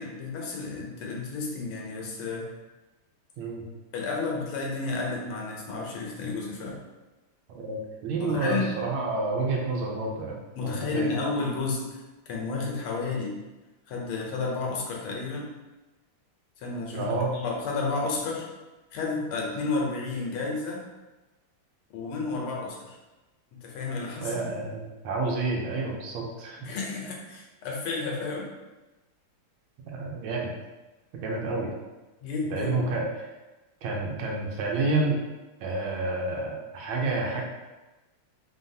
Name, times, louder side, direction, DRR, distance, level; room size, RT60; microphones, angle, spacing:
voice 1, 0.0-2.5 3.9-6.8 8.2-8.7 10.6-12.0 12.3-13.4 13.9-15.5 16.6-18.5 18.9-20.8 21.9-23.0 23.6-24.4 26.6-28.5 32.2-32.8, left 3 dB, 80° left, -1 dB, 1.7 m, -31 dB
voice 2, 7.5-11.1 16.9-17.3 24.2-26.6 29.9-30.5 31.1-31.7 32.4-33.3 33.8-35.2 35.6-37.4, right 3 dB, 75° right, -1 dB, 1.5 m, -29 dB
4.0 x 3.9 x 2.7 m, 1.1 s
omnidirectional pair, 2.4 m